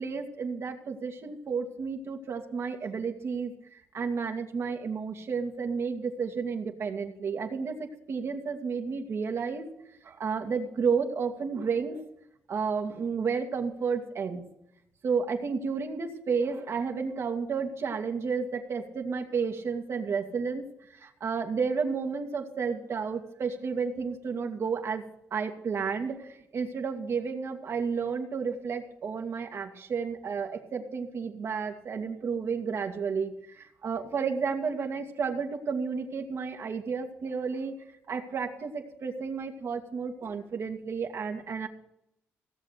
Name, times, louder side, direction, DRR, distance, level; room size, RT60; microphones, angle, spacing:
voice 1, 0.0-9.7 10.0-12.0 12.5-14.4 15.0-20.6 20.9-25.0 25.3-37.7 38.1-41.7, right 5 dB, 60° right, 3 dB, 2.3 m, -32 dB
17.5 x 7.4 x 6.8 m, 0.77 s
cardioid pair, 70°, 5 cm